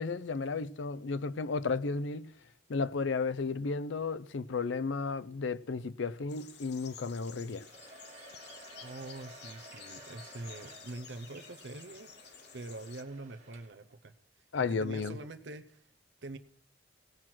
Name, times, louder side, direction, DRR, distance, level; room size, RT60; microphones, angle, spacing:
voice 1, 0.0-2.3 2.7-7.7 14.5-15.2, left 4 dB, 75° left, 0.5 m, -33 dB
sound 1, 6.2-12.3, right 3 dB, 10° right, 4.2 m, -63 dB
sound 2, 6.3-13.0, left 8 dB, 60° left, 1.0 m, -52 dB
Domestic sounds home sounds, 7.3-14.0, right 2 dB, 40° right, 2.1 m, -54 dB
voice 2, 8.8-12.1 12.5-15.8 16.2-16.4, right 2 dB, 65° right, 0.7 m, -45 dB
17.5 x 6.0 x 6.1 m
head